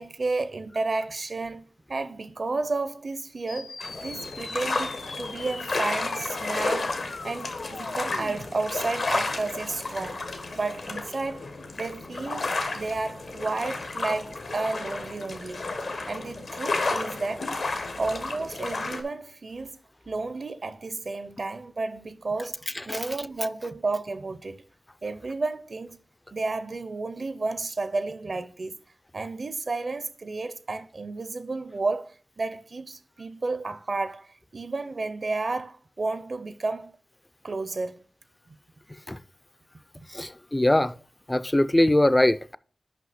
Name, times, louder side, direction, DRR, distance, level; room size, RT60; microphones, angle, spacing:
voice 1, 0.0-1.6 1.9-7.0 7.2-10.3 10.5-11.5 11.8-15.6 16.1-17.5 18.0-19.7 20.1-24.6 25.0-26.0 26.3-28.8 29.1-37.0 37.4-38.0 40.0-40.1, right 3 dB, 55° right, 0.5 m, -32 dB
sound 1, 3.5-8.5, left 3 dB, 90° left, 0.8 m, -41 dB
sound 2, 3.8-19.0, left 3 dB, 75° left, 1.3 m, -32 dB
voice 2, 40.1-40.9 41.3-42.6, left 1 dB, 15° left, 0.3 m, -22 dB
5.9 x 5.5 x 5.7 m
wide cardioid pair, 100°, 0 cm